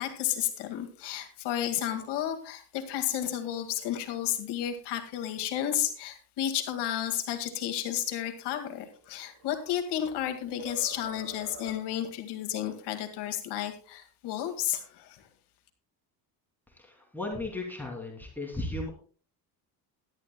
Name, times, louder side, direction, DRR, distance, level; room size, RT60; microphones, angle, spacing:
voice 1, 0.0-15.2, left 11 dB, 75° left, 6 dB, 2.1 m, -32 dB
sound 1, 8.9-10.3 10.7-12.1, right 1 dB, 80° right, 5.6 m, -47 dB
voice 2, 16.7-18.9, left 2 dB, 5° left, -1 dB, 2.7 m, -36 dB
18.0 x 11.5 x 2.2 m, 0.41 s
cardioid pair, 150°, 41 cm